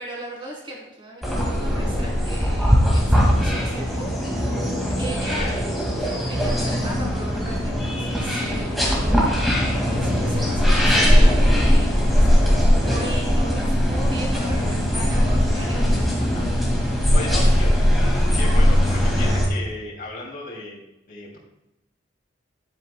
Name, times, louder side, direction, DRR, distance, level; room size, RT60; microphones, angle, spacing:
voice 1, 0.0-4.7 5.0-12.4 12.8-16.1 17.0-17.3 18.3-18.5, right 1 dB, 25° right, -2 dB, 3.1 m, -37 dB
sound 1, 1.2-19.5, equal, ahead, 2.0 m, -20 dB
voice 2, 16.9-17.7 18.3-20.8 21.1-21.4, left 2 dB, 45° left, -4 dB, 2.6 m, -34 dB
11.0 x 9.3 x 2.2 m, 0.90 s
head